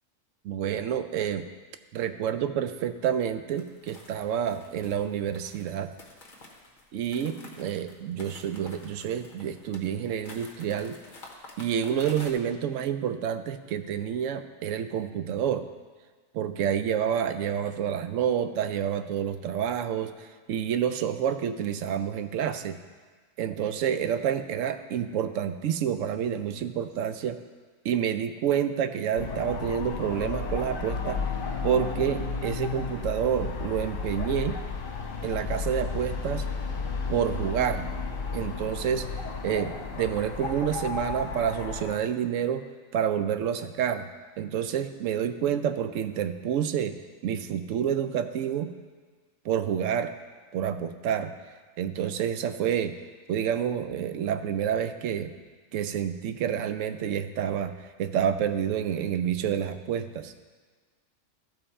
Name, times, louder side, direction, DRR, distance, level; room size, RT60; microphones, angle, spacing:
voice 1, 0.4-1.5 1.9-5.9 6.9-11.0 11.6-15.7 16.3-22.8 23.4-27.4 27.8-31.2 31.6-34.6 35.2-36.5 37.1-37.9 38.3-39.1 39.4-42.7 42.9-44.1 44.4-46.9 47.2-48.7 49.4-50.1 50.5-51.3 51.8-52.9 53.3-55.3 55.7-60.3, right 9 dB, 75° right, 10 dB, 0.9 m, -28 dB
sound 1, 3.6-12.3, left 2 dB, 40° left, 1.2 m, -48 dB
sound 2, 29.2-42.0, left 4 dB, 70° left, 1.3 m, -33 dB
13.5 x 5.5 x 4.2 m, 1.5 s
omnidirectional pair, 1.4 m